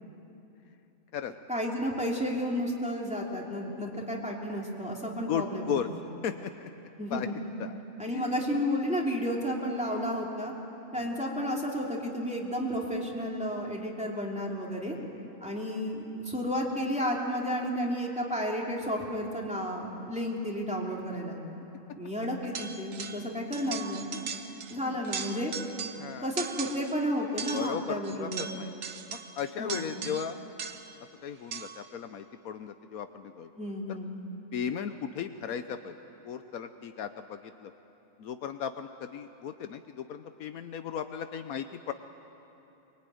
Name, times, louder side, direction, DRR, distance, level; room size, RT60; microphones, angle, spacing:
voice 1, 1.5-5.8 7.0-7.3 8.0-10.5 10.9-15.0 15.4-21.4 21.9-24.1 24.7-25.5 26.2-28.5 29.6-29.9 33.6-34.1, equal, 5° right, -2 dB, 3.0 m, -32 dB
voice 2, 5.3-5.9 6.2-7.8 8.1-8.4 9.8-10.1 10.9-11.2 14.9-15.3 24.1-25.1 26.0-26.3 27.5-28.7 29.1-30.4 31.2-33.5 33.9-34.0 34.5-36.0 36.2-37.7 38.2-41.9, left 8 dB, 80° left, 8 dB, 1.2 m, -37 dB
sound 1, 22.6-23.3 23.5-24.8 25.0-26.1 26.4-27.0 27.4-31.0 31.5-31.9, right 6 dB, 65° right, 1.4 m, -39 dB
23.5 x 22.0 x 9.3 m, 3.0 s
omnidirectional pair, 1.5 m